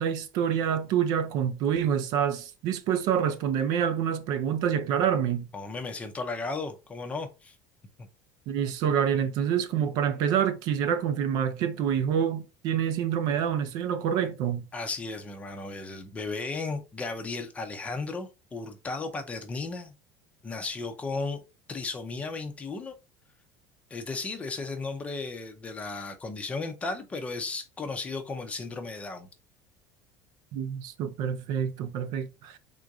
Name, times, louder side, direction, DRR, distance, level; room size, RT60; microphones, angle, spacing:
voice 1, 0.0-5.5 8.5-14.6 30.5-32.6, right 8 dB, 55° right, 0.6 m, -27 dB
voice 2, 5.5-7.5 14.7-19.9 20.4-21.4 21.7-22.9 23.9-29.3, left 3 dB, 15° left, 0.6 m, -35 dB
3.7 x 2.6 x 4.6 m
cardioid pair, 165°, 8 cm